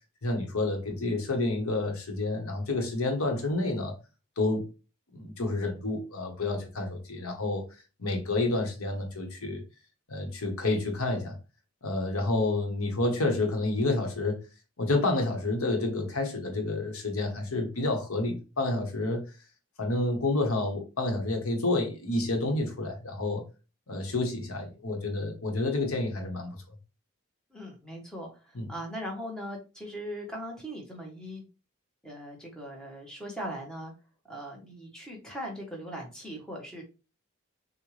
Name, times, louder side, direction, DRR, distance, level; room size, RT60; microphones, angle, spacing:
voice 1, 0.2-3.9 4.4-4.7 5.1-7.6 8.0-9.6 10.1-11.4 11.8-14.4 14.8-19.2 19.8-23.4 23.9-26.6 28.5-28.7, left 2 dB, 85° left, 1.3 m, -29 dB
voice 2, 27.5-31.4 32.0-33.9 34.3-36.8, equal, 5° left, 1.2 m, -39 dB
6.3 x 2.5 x 3.3 m
head